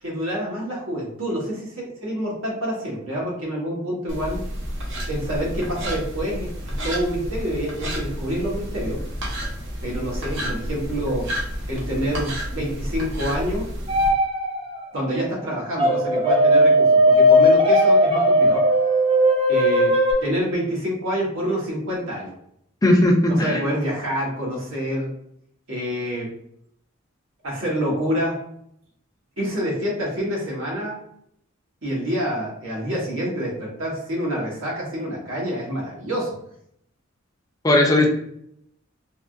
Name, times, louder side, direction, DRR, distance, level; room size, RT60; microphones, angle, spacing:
voice 1, 0.0-4.4 5.1-6.5 6.8-9.0 9.8-11.3 11.7-13.7 14.9-18.6 19.5-20.0 20.2-22.3 23.3-25.1 25.7-26.3 27.4-28.4 29.4-31.0 31.8-36.4, equal, 80° right, -3 dB, 1.3 m, -27 dB
sound 1, 4.1-14.1, equal, 65° right, 0.8 m, -30 dB
sound 2, 13.9-14.9 15.8-20.1, equal, 25° right, 0.6 m, -17 dB
voice 2, 22.8-23.6 37.6-38.1, left 1 dB, 20° left, 0 dB, 0.5 m, -17 dB
3.5 x 2.3 x 2.5 m, 0.71 s
head